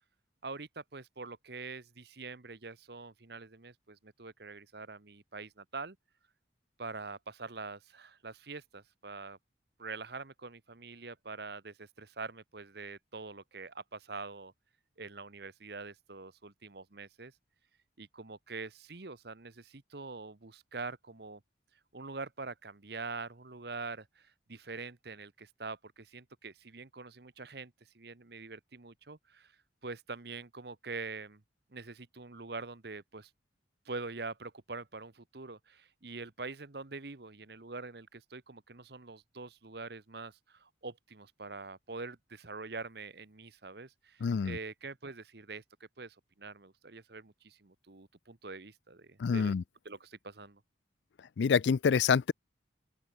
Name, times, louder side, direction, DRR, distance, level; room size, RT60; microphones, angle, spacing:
voice 1, 0.4-6.0 6.8-9.4 9.8-14.5 15.0-17.3 18.0-21.4 21.9-29.6 29.8-31.4 31.7-33.3 33.8-49.6 49.8-50.6, right 3 dB, 55° right, 1.1 m, -44 dB
voice 2, 44.2-44.6 49.2-49.6 51.4-52.3, left 6 dB, 70° left, 0.4 m, -26 dB
open air
head